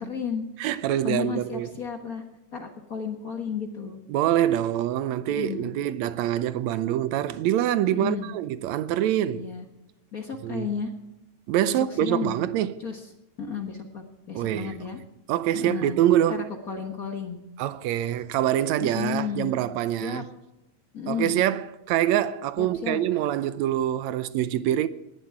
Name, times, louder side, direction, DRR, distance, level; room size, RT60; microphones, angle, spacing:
voice 1, 0.0-0.5 1.0-2.2 2.5-4.0 5.3-5.7 8.0-8.3 9.3-9.7 10.1-10.9 11.7-12.4 12.8-13.0 13.4-15.0 15.5-16.0 16.3-17.4 18.0-18.1 18.8-19.6 20.0-20.2 20.9-21.4 22.6-23.2, left 7 dB, 40° left, 1.3 m, -33 dB
voice 2, 0.6-1.7 4.1-9.5 10.4-10.7 11.5-12.7 14.3-14.8 15.3-16.4 17.6-20.3 21.1-24.9, right 12 dB, 80° right, 1.9 m, -25 dB
18.5 x 11.0 x 4.6 m
omnidirectional pair, 3.3 m